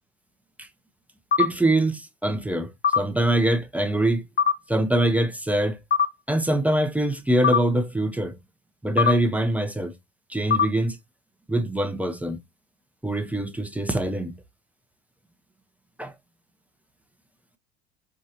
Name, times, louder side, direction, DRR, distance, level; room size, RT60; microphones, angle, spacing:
sound 1, 1.3-1.5 2.8-3.0 4.4-4.6 5.9-6.1 7.4-7.6 9.0-9.2 10.5-10.7, left 7 dB, 25° left, 0.9 m, -20 dB
voice 1, 1.4-4.2 4.7-5.8 6.3-8.4 8.8-9.9 10.3-11.0 11.5-12.4 13.0-14.3 16.0-16.1, right 1 dB, 5° right, 0.5 m, -24 dB
3.9 x 2.6 x 2.7 m
hypercardioid pair, 75°, 33 cm